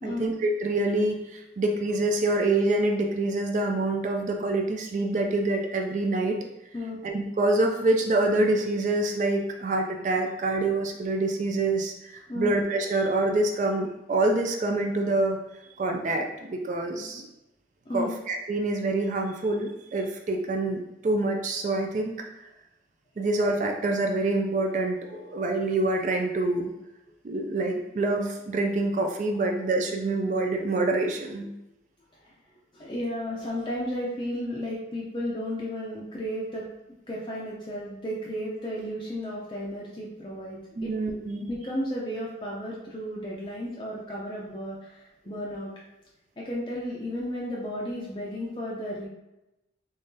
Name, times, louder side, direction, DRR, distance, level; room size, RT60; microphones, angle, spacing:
voice 1, 0.0-6.4 7.0-15.4 15.8-17.3 17.9-22.1 23.2-26.7 27.2-31.5 40.8-41.4, right 2 dB, 45° right, 3 dB, 0.3 m, -26 dB
voice 2, 25.1-25.4 29.3-29.5 31.4-31.5 32.2-32.3 32.7-36.7 37.1-40.9 41.4-45.7 46.4-49.1, equal, 25° left, -5 dB, 0.5 m, -33 dB
3.6 x 3.1 x 2.7 m, 0.93 s
head